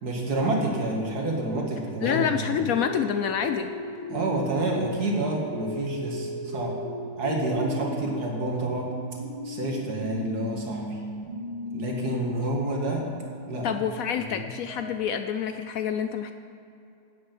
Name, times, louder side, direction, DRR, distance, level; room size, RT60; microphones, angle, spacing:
voice 1, 0.0-2.6 4.1-6.8 7.2-8.9 9.4-11.0 11.7-13.0 13.5-13.7 14.1-14.5, right 2 dB, 65° right, -1 dB, 2.5 m, -28 dB
voice 2, 2.0-3.7 13.6-16.3, left 8 dB, 70° left, 8 dB, 0.9 m, -27 dB
sound 1, 2.7-8.1 8.8-13.7 14.7-15.0, equal, 15° left, 2.5 m, -37 dB
9.8 x 8.9 x 8.4 m, 2.7 s
omnidirectional pair, 1.8 m